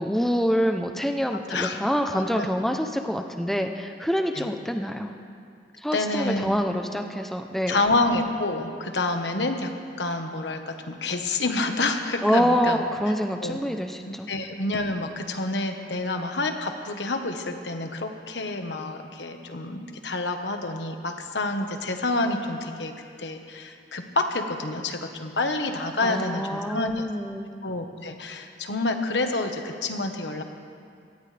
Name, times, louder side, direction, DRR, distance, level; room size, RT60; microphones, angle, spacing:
voice 1, 0.0-5.1 5.8-7.8 12.2-14.3 26.0-27.5, equal, ahead, 5 dB, 0.7 m, -26 dB
voice 2, 2.1-2.5 4.3-4.5 5.9-6.5 7.7-9.7 10.0-10.7 11.0-12.8 13.4-13.6 14.3-22.9 23.2-27.1 27.6-30.4, left 2 dB, 85° left, 5 dB, 1.4 m, -28 dB
23.5 x 18.0 x 3.4 m, 2.3 s
head